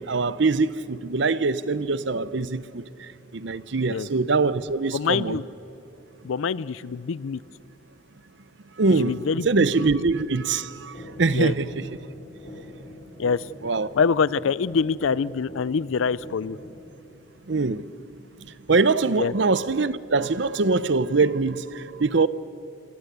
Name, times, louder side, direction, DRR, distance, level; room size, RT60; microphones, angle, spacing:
voice 1, 0.0-2.8 3.3-5.4 8.8-9.2 9.4-11.8 13.6-13.9 17.5-17.8 18.7-22.3, right 3 dB, 60° right, 0.7 m, -23 dB
voice 2, 4.9-5.4 6.2-7.4 9.0-9.5 9.8-9.9 11.3-11.5 13.2-13.5 14.0-16.6 19.2-19.3, left 5 dB, 80° left, 0.4 m, -25 dB
sound 1, 10.9-16.9, left 1 dB, 40° left, 5.7 m, -43 dB
25.5 x 18.5 x 8.1 m
head